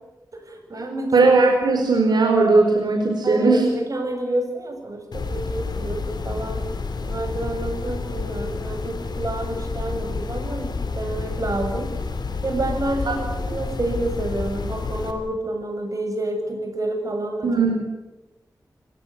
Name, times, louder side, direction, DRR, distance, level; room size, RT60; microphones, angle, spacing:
voice 1, 0.3-1.1 3.2-6.6 7.0-11.9 12.4-17.5, right 1 dB, 50° right, 4 dB, 7.8 m, -28 dB
voice 2, 1.1-3.6 13.0-13.1 17.4-17.8, right 3 dB, 80° right, 2 dB, 4.7 m, -18 dB
sound 1, 5.1-15.1, left 4 dB, 85° left, 3.7 m, -29 dB
28.5 x 17.5 x 8.8 m, 1.1 s
wide cardioid pair, 100°, 7 cm